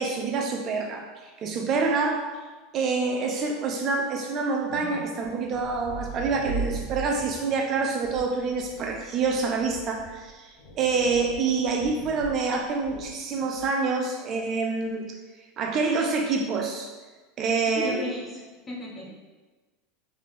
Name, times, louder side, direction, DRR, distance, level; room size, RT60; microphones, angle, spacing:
voice 1, 0.0-2.3 2.7-15.2 15.6-16.9 17.4-18.0, right 4 dB, 40° right, 2 dB, 0.5 m, -27 dB
sound 1, 4.7-13.8, right 3 dB, 70° left, 1.0 m, -39 dB
voice 2, 17.8-19.1, left 1 dB, 15° left, -4 dB, 1.1 m, -34 dB
3.3 x 3.3 x 3.7 m, 1.3 s
supercardioid pair, 115°, 0 cm